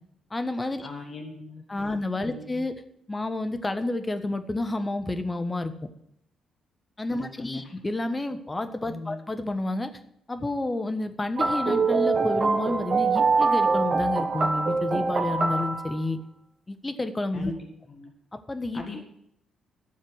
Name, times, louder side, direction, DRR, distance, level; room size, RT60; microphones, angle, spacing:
voice 1, 0.3-0.9 1.7-2.7 3.1-5.7 7.0-9.9 10.3-16.2 16.7-17.5 18.3-19.0, left 2 dB, 20° left, 9 dB, 1.4 m, -30 dB
voice 2, 0.8-2.0 2.2-2.6 7.2-7.7 8.9-9.2 17.3-17.6 17.9-18.1 18.7-19.0, left 3 dB, 45° left, 3 dB, 1.8 m, -39 dB
sound 1, 11.4-16.0, right 4 dB, 40° right, 1.2 m, -24 dB
12.0 x 7.4 x 7.8 m, 0.74 s
figure-of-eight pair, 40°, 0 cm